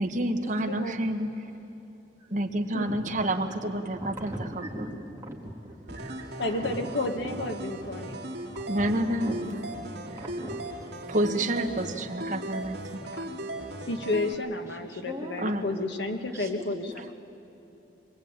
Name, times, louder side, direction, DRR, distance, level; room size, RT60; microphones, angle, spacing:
voice 1, 0.0-1.5 2.3-4.3 6.4-6.7 8.7-9.6 11.1-13.0 15.4-15.9, right 1 dB, 45° right, 4 dB, 1.4 m, -29 dB
voice 2, 2.7-3.2 3.5-4.9 5.2-5.4 5.6-6.3 7.2-7.4 8.3-8.7 8.9-9.3 10.1-11.0 13.5-13.6 14.6-15.4 16.3-16.5, right 1 dB, 15° right, -3 dB, 2.8 m, -40 dB
sound 1, 5.9-14.3, right 1 dB, 70° right, 2.4 m, -38 dB
voice 3, 6.4-8.2 13.9-16.8, left 2 dB, 80° left, 5 dB, 1.5 m, -31 dB
24.5 x 19.5 x 8.9 m, 2.8 s
head